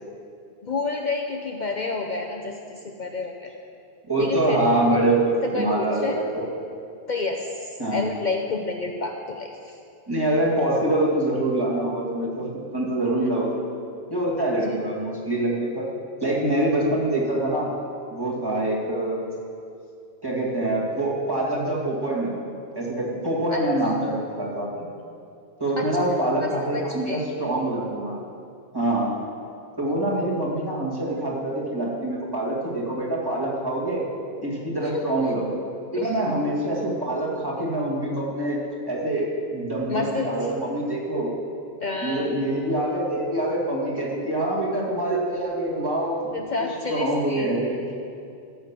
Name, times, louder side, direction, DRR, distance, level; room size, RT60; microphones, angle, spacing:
voice 1, 0.6-3.5 4.2-4.6 4.9-5.0 5.4-6.2 7.1-9.8 23.5-23.6 25.8-25.9 26.7-27.2 34.8-35.3 35.9-36.2 39.9-40.5 41.8-42.3 46.3-47.5, left 3 dB, 50° left, 2 dB, 0.8 m, -29 dB
voice 2, 4.1-6.5 7.8-8.0 10.1-12.5 12.7-13.6 14.1-15.8 16.2-17.7 18.1-19.2 20.2-22.4 22.8-24.9 25.6-28.1 28.7-29.1 29.8-34.0 34.4-35.6 35.9-38.6 38.9-41.3 42.0-46.2 46.9-47.8, right 1 dB, 20° right, -5 dB, 2.3 m, -25 dB
15.5 x 5.6 x 7.4 m, 2.5 s
omnidirectional pair, 1.1 m